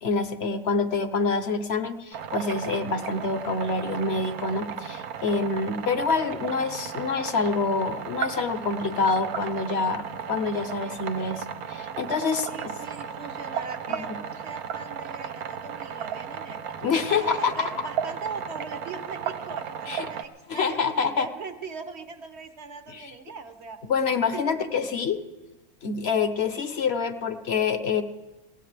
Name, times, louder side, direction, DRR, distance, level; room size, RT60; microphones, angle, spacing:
voice 1, 0.0-12.5 13.9-14.2 16.8-17.7 19.9-20.1 20.5-21.3 22.9-23.1 23.9-25.2 25.8-28.0, left 4 dB, 50° left, 10 dB, 1.0 m, -26 dB
sound 1, 2.1-20.2, right 8 dB, 85° right, 1.2 m, -35 dB
voice 2, 12.5-16.6 17.2-23.8 24.3-24.6, right 4 dB, 55° right, 9 dB, 1.0 m, -40 dB
21.5 x 17.0 x 3.3 m, 1.1 s
omnidirectional pair, 1.5 m